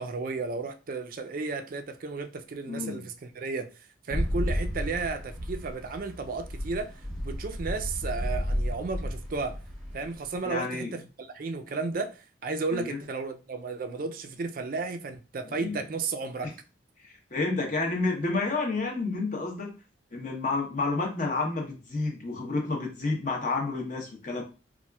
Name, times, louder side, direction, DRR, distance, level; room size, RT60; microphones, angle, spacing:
voice 1, 0.0-3.7 4.1-9.6 9.9-16.5, right 4 dB, 45° right, 0.4 m, -33 dB
voice 2, 2.7-3.0 10.4-10.9 12.7-13.0 15.4-15.8 16.4-16.5 17.0-19.7 20.1-24.4, left 3 dB, 40° left, 0.9 m, -30 dB
sound 1, 4.1-10.6, equal, 5° left, 0.9 m, -32 dB
4.1 x 2.4 x 2.3 m
head